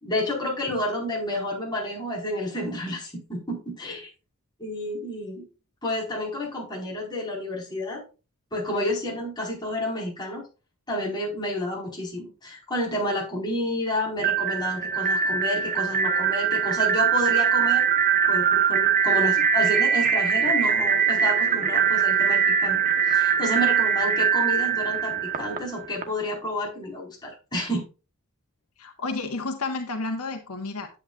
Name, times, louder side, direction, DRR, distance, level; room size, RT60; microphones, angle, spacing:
voice 1, 0.0-4.1 4.6-5.4 5.8-8.0 8.5-10.4 10.9-17.8 18.3-22.8 23.1-27.8, left 1 dB, 20° left, -3 dB, 4.7 m, -30 dB
sound 1, 14.2-26.0, right 7 dB, 40° right, 1.1 m, -22 dB
voice 2, 28.8-31.0, left 3 dB, 85° left, 5 dB, 1.4 m, -31 dB
10.5 x 8.6 x 2.4 m, 0.31 s
head